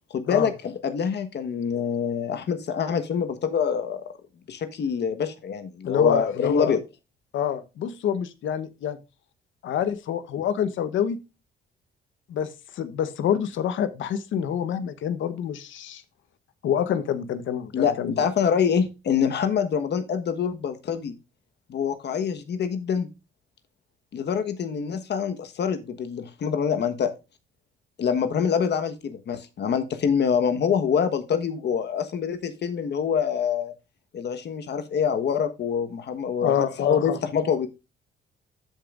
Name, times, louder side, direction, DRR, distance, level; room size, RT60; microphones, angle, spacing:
voice 1, 0.1-4.0 4.5-6.8 17.7-21.1 21.7-23.1 24.1-27.1 28.0-33.7 34.1-37.7, left 7 dB, 60° left, 1.3 m, -25 dB
voice 2, 5.8-6.8 7.3-9.0 9.6-11.2 12.3-16.0 16.6-18.2 36.4-37.2, left 9 dB, 75° left, 1.1 m, -27 dB
13.0 x 5.3 x 2.5 m
cardioid pair, 90°, 20 cm